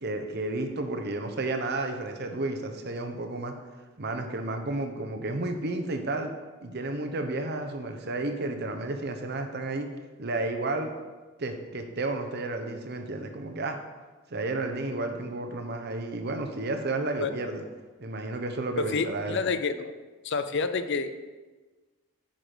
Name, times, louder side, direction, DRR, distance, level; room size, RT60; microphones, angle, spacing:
voice 1, 0.0-3.5 4.0-6.3 6.6-9.9 10.2-10.9 11.4-13.8 14.3-17.6 18.0-19.4, right 2 dB, 50° right, 5 dB, 0.9 m, -32 dB
voice 2, 18.8-19.9 20.2-21.2, left 5 dB, 55° left, 10 dB, 0.5 m, -28 dB
9.3 x 6.0 x 5.1 m, 1.3 s
head